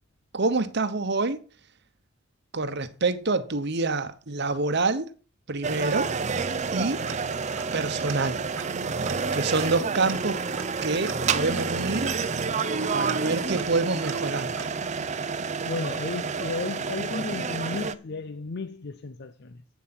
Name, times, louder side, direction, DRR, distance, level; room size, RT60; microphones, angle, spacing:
voice 1, 0.3-1.4 2.5-5.1 5.5-6.1 6.7-7.0 7.7-8.4 9.3-10.4 10.8-12.2 12.9-14.7, right 3 dB, 60° right, 1.1 m, -27 dB
sound 1, 5.6-17.9, right 5 dB, 35° right, 0.6 m, -29 dB
sound 2, 6.1-17.9, left 2 dB, 5° left, 1.6 m, -49 dB
Tick-tock, 7.1-7.8 8.1-8.2 8.5-15.1, right 6 dB, 75° right, 1.3 m, -43 dB
voice 2, 15.6-19.6, left 3 dB, 55° left, 0.6 m, -34 dB
8.5 x 7.6 x 6.0 m
head